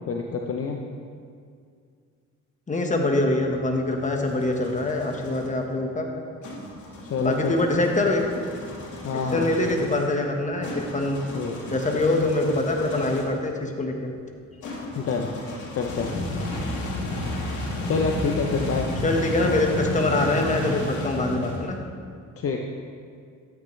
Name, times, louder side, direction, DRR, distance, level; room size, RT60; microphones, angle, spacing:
voice 1, 0.1-0.8 7.1-7.6 9.0-9.6 11.3-11.6 11.9-12.1 14.9-15.3 15.8-16.2 17.9-18.9 22.4-22.6, left 5 dB, 50° left, 2 dB, 0.8 m, -27 dB
voice 2, 2.7-6.1 7.2-8.4 9.1-11.2 11.7-14.1 19.0-21.8, left 2 dB, 25° left, 2 dB, 1.4 m, -24 dB
sound 1, 3.7-5.5 6.4-13.4 14.6-21.9, left 1 dB, 75° left, 2.0 m, -33 dB
13.0 x 8.7 x 3.3 m, 2.2 s
cardioid pair, 90°, 30 cm